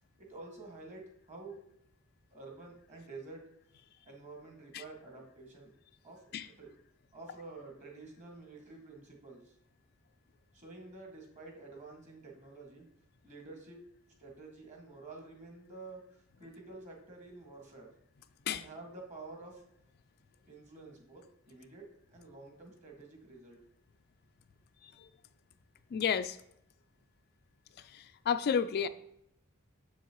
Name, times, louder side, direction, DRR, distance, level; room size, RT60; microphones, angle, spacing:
voice 1, 0.2-1.6 2.3-3.4 4.1-5.7 6.0-6.7 7.1-9.6 10.5-12.9 13.2-13.8 14.2-18.0 18.5-19.6 20.4-23.6, right 3 dB, 35° right, 0 dB, 1.9 m, -50 dB
voice 2, 25.9-26.4 27.8-28.9, left 7 dB, 45° left, 11 dB, 0.3 m, -31 dB
7.2 x 7.0 x 3.0 m, 0.76 s
head